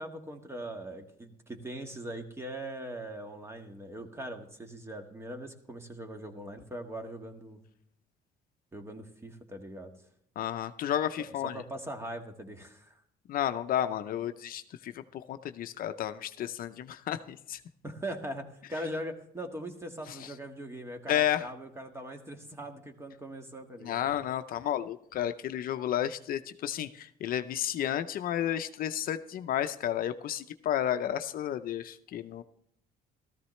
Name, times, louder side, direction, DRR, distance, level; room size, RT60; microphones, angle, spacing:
voice 1, 0.0-7.6 8.7-9.9 11.2-13.0 17.8-24.0, right 1 dB, 15° right, 5 dB, 1.6 m, -41 dB
voice 2, 10.4-11.6 13.3-17.6 20.1-20.3 21.1-21.5 23.8-32.4, left 11 dB, 60° left, 9 dB, 0.6 m, -32 dB
14.5 x 14.0 x 3.2 m, 0.73 s
cardioid pair, 110°, 17 cm